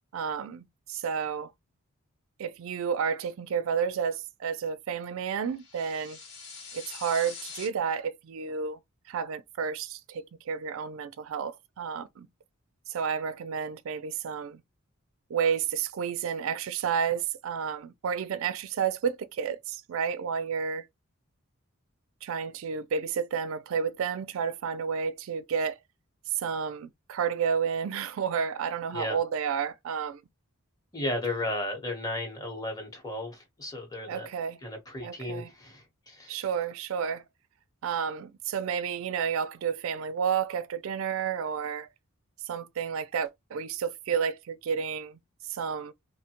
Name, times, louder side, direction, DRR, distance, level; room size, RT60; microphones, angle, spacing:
voice 1, 0.1-1.5 2.4-6.2 6.7-8.8 9.1-12.3 12.9-14.6 15.3-20.8 22.2-25.7 26.4-30.2 34.1-34.6 35.0-35.5 36.3-37.2 37.8-41.9 42.5-45.2 45.5-45.9, right 7 dB, 65° right, 0.3 m, -31 dB
sound 1, 5.6-7.7, left 5 dB, 75° left, 1.3 m, -43 dB
voice 2, 30.9-34.3 34.6-36.4, left 1 dB, 15° left, 0.9 m, -34 dB
3.0 x 2.1 x 2.8 m
head